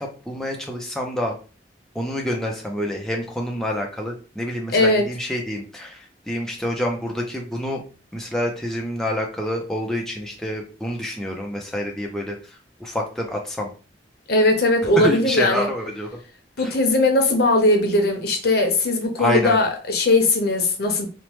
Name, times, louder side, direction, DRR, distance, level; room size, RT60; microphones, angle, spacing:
voice 1, 0.3-1.3 2.0-7.8 8.1-12.4 12.8-13.7 15.0-16.1 19.2-19.6, left 1 dB, 5° left, 0.4 m, -27 dB
voice 2, 4.7-5.1 14.3-15.7 16.6-21.1, left 2 dB, 60° left, 0.7 m, -19 dB
3.0 x 2.0 x 3.0 m
head